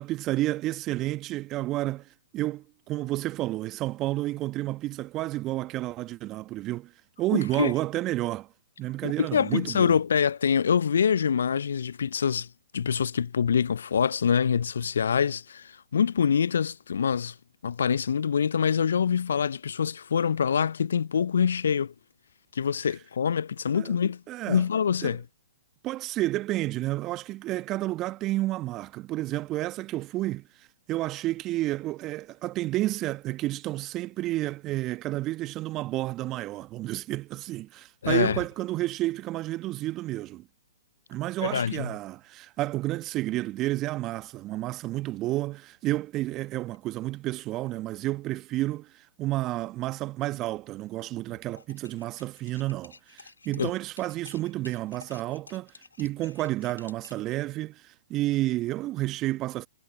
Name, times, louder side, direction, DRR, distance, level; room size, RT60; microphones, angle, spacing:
voice 1, 0.0-6.9 7.2-8.5 8.8-10.0 23.7-24.0 24.3-24.6 25.0-25.2 25.8-30.5 30.9-40.5 41.1-55.7 56.0-59.7, right 16 dB, 30° right, 1.2 m, -30 dB
voice 2, 9.0-12.5 12.7-17.3 17.6-21.9 22.5-24.2 24.5-25.2 38.0-38.4 41.4-41.9 53.6-53.7, left 7 dB, 65° left, 0.4 m, -25 dB
sound 1, 51.5-57.3, left 4 dB, 80° left, 3.8 m, -52 dB
figure-of-eight pair, 120°, 0 cm